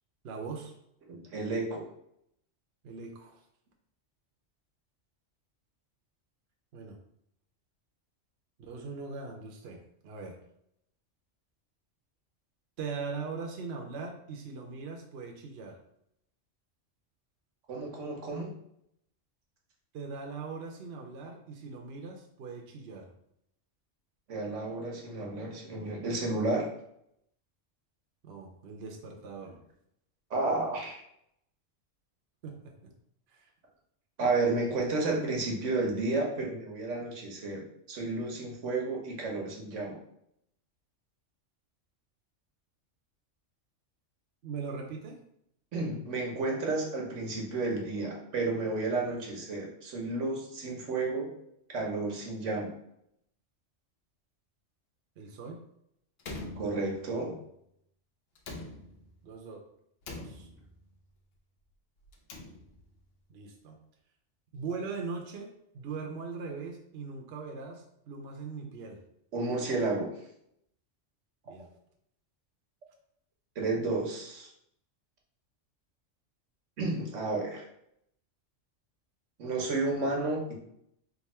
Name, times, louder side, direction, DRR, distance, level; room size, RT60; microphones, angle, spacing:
voice 1, 0.2-0.7 2.8-3.4 6.7-7.0 8.6-10.4 12.8-15.8 19.9-23.1 28.2-29.6 32.4-32.9 33.3-33.5 44.4-45.2 55.2-55.6 59.2-59.6 60.2-60.5 63.3-63.8 64.5-69.0 71.5-71.7, right 4 dB, 65° right, 1 dB, 0.9 m, -40 dB
voice 2, 1.1-1.8 17.7-18.5 24.3-26.7 30.3-31.0 34.2-40.0 45.7-51.3 51.7-52.7 56.6-57.4 69.3-70.1 73.6-74.5 76.8-77.6 79.4-80.6, right 3 dB, 90° right, 0 dB, 1.3 m, -32 dB
Slam, 56.2-57.3 58.4-59.3 60.0-60.9 62.0-63.0, left 2 dB, 65° left, 0.8 m, -44 dB
3.5 x 2.7 x 4.2 m, 0.75 s
omnidirectional pair, 1.2 m